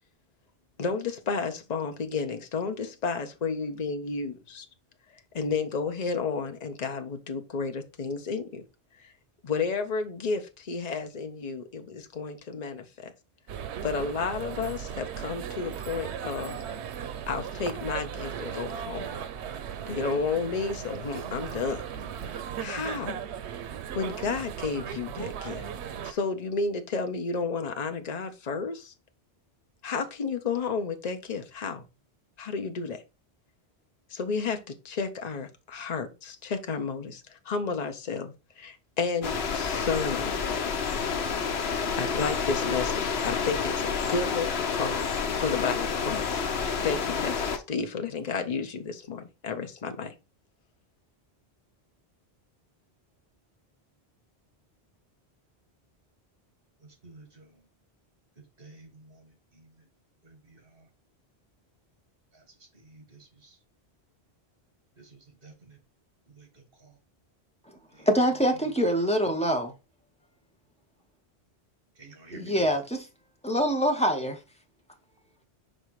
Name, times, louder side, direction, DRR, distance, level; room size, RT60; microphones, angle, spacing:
voice 1, 0.8-4.7 5.3-8.6 9.0-9.1 9.4-13.1 13.8-16.6 17.3-19.2 19.9-21.8 22.6-23.2 23.9-25.6 26.0-28.9 29.8-31.8 32.4-33.0 34.1-40.7 41.9-45.0 45.4-46.4 46.8-50.1, left 5 dB, 40° left, 0.9 m, -32 dB
sound 1, 13.5-26.1, right 8 dB, 85° right, 0.9 m, -37 dB
sound 2, 39.2-47.6, left 5 dB, 75° left, 1.1 m, -29 dB
voice 2, 56.8-57.6 58.4-59.9 60.2-60.9 62.3-63.6 65.0-65.8 66.3-67.0 67.9-68.1 72.0-72.7, right 3 dB, 60° right, 2.0 m, -52 dB
voice 3, 68.1-69.7 72.3-73.0 73.4-74.4, equal, 5° left, 1.0 m, -24 dB
5.5 x 3.8 x 4.7 m
omnidirectional pair, 1.1 m